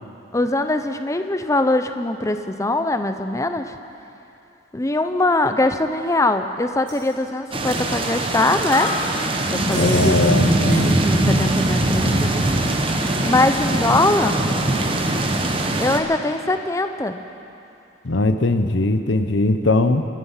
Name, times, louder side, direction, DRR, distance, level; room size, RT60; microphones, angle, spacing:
voice 1, 0.3-3.7 4.7-8.9 9.5-10.5 10.8-12.7 13.0-14.4 15.8-17.2, left 2 dB, 15° left, 8 dB, 0.6 m, -22 dB
sound 1, 6.9-7.1 7.7-7.9 8.2-8.3 8.7-11.4 11.6-12.2, equal, 85° right, 3.2 m, -33 dB
sound 2, 7.5-16.0, right 1 dB, 30° right, 1.0 m, -21 dB
voice 2, 9.7-11.0 18.0-20.1, left 2 dB, 75° left, 9 dB, 0.8 m, -20 dB
25.0 x 9.5 x 5.7 m, 2.8 s
head